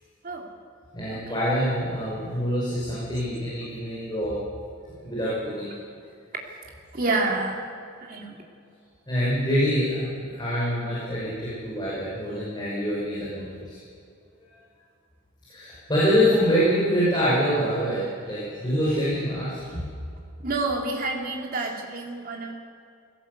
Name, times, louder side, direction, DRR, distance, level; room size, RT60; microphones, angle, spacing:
voice 1, 0.9-4.4 5.0-5.7 9.1-13.8 15.5-19.8, equal, 20° left, -8 dB, 5.9 m, -25 dB
voice 2, 6.9-7.6 8.0-8.3 20.4-22.5, right 2 dB, 45° right, 0 dB, 3.0 m, -28 dB
20.0 x 17.0 x 8.1 m, 2.4 s
head